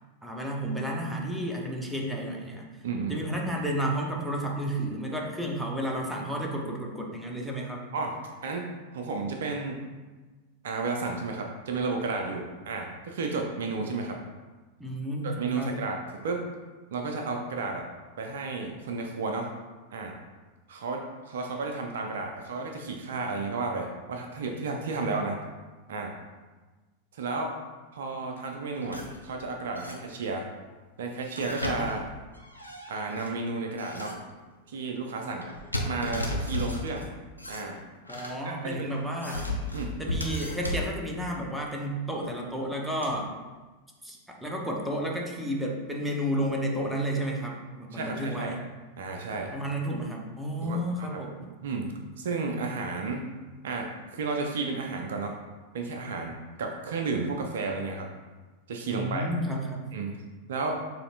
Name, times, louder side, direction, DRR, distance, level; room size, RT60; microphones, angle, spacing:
voice 1, 0.2-2.7 3.1-7.8 14.8-15.7 38.1-39.5 40.0-43.3 44.0-48.6 49.5-51.4 58.9-59.9, equal, 5° right, -1 dB, 0.8 m, -32 dB
voice 2, 2.8-3.2 7.9-8.1 8.4-8.7 8.9-9.8 10.6-14.2 15.2-16.4 16.9-17.8 18.2-19.5 19.9-20.1 20.7-25.4 25.9-26.1 27.1-27.5 27.9-30.5 31.0-32.0 32.9-34.2 34.7-35.5 35.9-37.1 37.5-37.7 38.4-38.9 39.7-40.0 47.9-48.6 49.0-49.5 50.6-51.2 51.6-53.2 53.6-55.4 55.7-58.1 58.7-59.3 59.9-60.1 60.5-60.7, right 3 dB, 60° right, 3 dB, 0.5 m, -32 dB
sound 1, 28.8-29.2 29.7-30.3 31.2-33.3 33.8-34.3 35.4-37.1 37.4-38.4 38.9-40.9 42.2-42.3 43.0-43.2, left 1 dB, 90° left, 0.5 m, -34 dB
6.7 x 3.1 x 2.5 m, 1.3 s
figure-of-eight pair, 90°, 0 cm